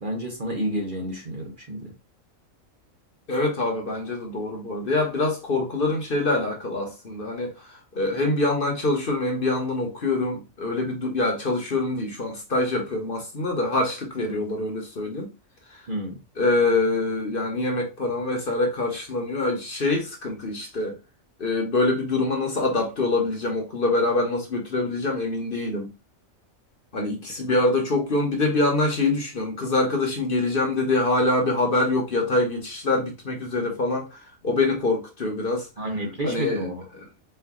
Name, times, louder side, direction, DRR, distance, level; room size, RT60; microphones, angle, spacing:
voice 1, 0.0-1.9 15.9-16.2 27.4-27.5 35.8-36.8, equal, 45° right, 0.9 m, -30 dB
voice 2, 3.3-15.3 15.7-15.8 16.4-21.0 21.4-25.9 26.9-34.2 34.4-35.7 36.2-36.7, left 2 dB, 45° left, 1.1 m, -25 dB
4.4 x 2.5 x 3.6 m
omnidirectional pair, 1.4 m